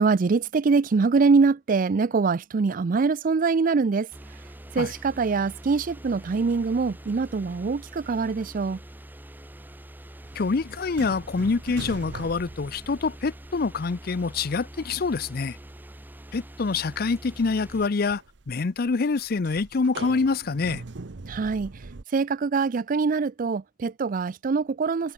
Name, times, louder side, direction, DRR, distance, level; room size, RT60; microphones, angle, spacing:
voice 1, 0.0-4.1 4.7-8.8 21.3-21.7 22.1-25.1, right 4 dB, 50° right, 0.4 m, -24 dB
sound 1, 4.1-17.9, right 1 dB, 10° right, 0.8 m, -44 dB
sound 2, 10.2-14.0 14.3-15.4 15.7-15.8 16.3-22.0, right 3 dB, 70° right, 0.8 m, -42 dB
voice 2, 10.4-15.6 16.3-18.2 18.5-20.8, left 4 dB, 55° left, 0.6 m, -26 dB
head